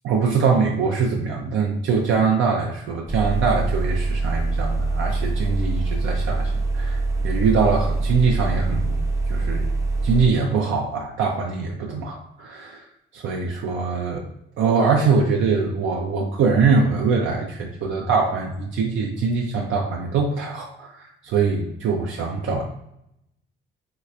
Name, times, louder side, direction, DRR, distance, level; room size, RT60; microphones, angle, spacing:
voice 1, 0.0-9.0 9.3-9.7 10.0-12.9 13.1-14.2 14.6-22.6, right 5 dB, 80° right, 0 dB, 0.5 m, -23 dB
sound 1, 3.1-10.3, right 3 dB, 15° right, 0.5 m, -24 dB
3.2 x 2.9 x 2.4 m, 0.79 s
cardioid pair, 90°, 20 cm